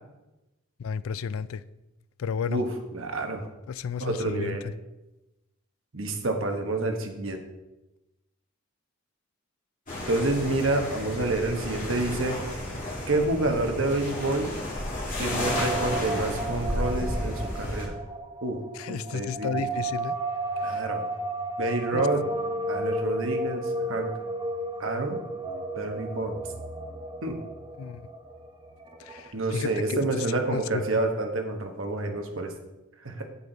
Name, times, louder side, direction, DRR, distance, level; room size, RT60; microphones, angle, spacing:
voice 1, 0.8-1.6 2.2-2.6 3.7-4.7 18.7-20.2 20.6-20.9 21.9-22.1 27.8-28.0 29.0-30.3 30.5-30.8, left 6 dB, 75° left, 0.4 m, -33 dB
voice 2, 2.9-3.5 4.0-4.7 5.9-7.4 10.1-12.4 13.1-14.5 15.2-17.9 18.4-18.6 18.9-19.7 20.6-21.0 21.6-22.2 22.7-24.1 24.8-25.2 25.7-26.4 27.2-27.4 29.3-32.5 33.0-33.2, right 2 dB, 65° right, 1.2 m, -28 dB
sound 1, 9.9-17.9, left 1 dB, 40° left, 2.8 m, -32 dB
sound 2, 15.4-29.3, right 1 dB, 20° right, 0.8 m, -33 dB
8.3 x 7.8 x 4.0 m
head